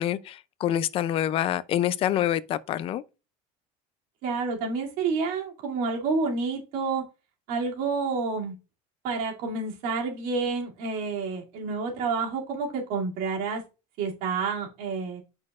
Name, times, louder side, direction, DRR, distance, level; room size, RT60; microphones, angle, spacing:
voice 1, 0.0-3.0, left 11 dB, 35° left, 0.4 m, -26 dB
voice 2, 4.2-7.0 7.5-8.5 9.0-13.6 14.0-15.2, right 4 dB, 60° right, 2.6 m, -29 dB
8.5 x 6.1 x 2.4 m
cardioid pair, 165°, 17 cm